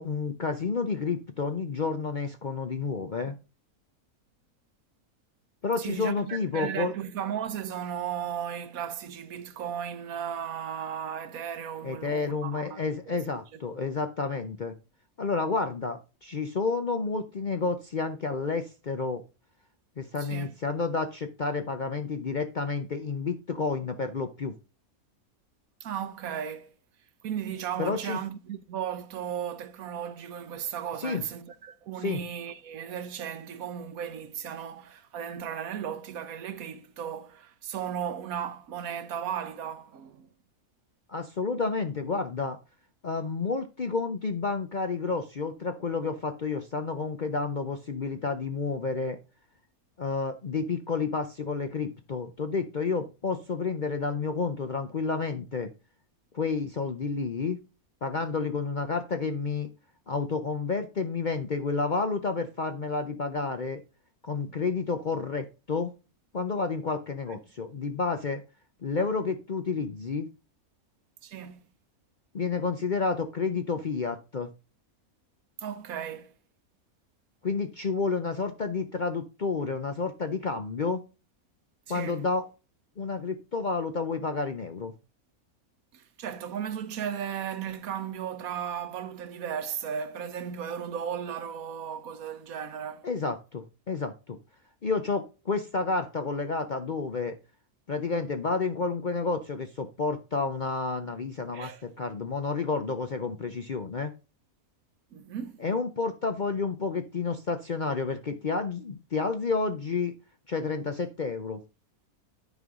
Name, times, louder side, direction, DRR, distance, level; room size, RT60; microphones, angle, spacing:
voice 1, 0.0-3.3 5.6-6.9 11.8-14.8 15.2-19.2 20.0-24.5 27.8-28.2 31.0-31.2 32.0-32.2 41.1-42.6 43.0-49.2 50.0-55.7 56.3-57.6 58.0-59.7 60.1-63.8 64.2-65.9 66.3-68.4 68.8-70.3 72.3-74.5 77.4-81.0 81.9-82.4 83.0-84.9 93.0-94.4 94.8-97.3 97.9-104.1 105.6-110.1 110.5-111.6, left 4 dB, 45° left, 0.6 m, -30 dB
voice 2, 5.8-13.2 20.2-20.5 25.8-26.7 27.2-40.3 71.2-71.6 75.6-76.3 81.9-82.2 85.9-93.1 101.5-101.8 105.1-105.6, right 8 dB, 70° right, 1.2 m, -35 dB
9.6 x 5.4 x 3.6 m
omnidirectional pair, 1.6 m